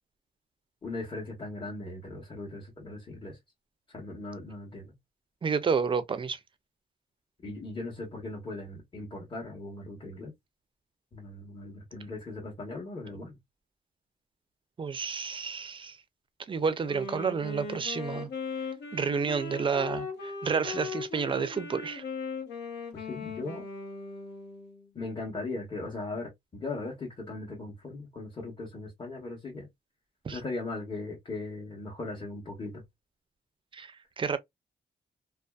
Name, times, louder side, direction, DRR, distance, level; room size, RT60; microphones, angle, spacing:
voice 1, 0.8-3.4 3.9-4.9 7.4-10.3 11.1-13.4 22.9-23.7 24.9-29.7 30.3-32.8, left 2 dB, 30° left, 1.0 m, -38 dB
voice 2, 5.4-6.4 14.8-16.0 16.5-18.3 18.9-22.0 30.2-30.4 33.7-34.4, right 5 dB, 30° right, 0.4 m, -30 dB
Wind instrument woodwind instrument, 16.8-24.9, left 4 dB, 80° left, 1.1 m, -38 dB
2.5 x 2.3 x 2.2 m
cardioid pair, 105°, 17 cm